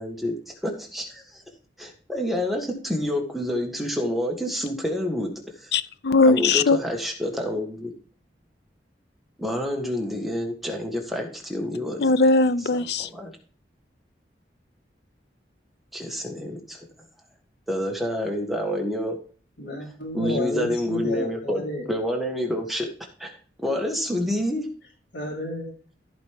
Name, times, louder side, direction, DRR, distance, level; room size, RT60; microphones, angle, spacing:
voice 1, 0.0-1.4 1.8-5.3 5.6-5.7 6.3-7.9 9.4-12.0 13.0-13.3 15.9-16.8 17.7-19.2 20.1-21.6 21.9-22.9 23.2-23.3 23.6-24.7, left 1 dB, ahead, 1.6 m, -28 dB
voice 2, 5.7-6.8 12.0-13.1, left 3 dB, 65° left, 0.5 m, -19 dB
voice 3, 19.6-21.9 25.1-25.7, left 1 dB, 80° left, 3.8 m, -31 dB
14.5 x 5.2 x 3.6 m
head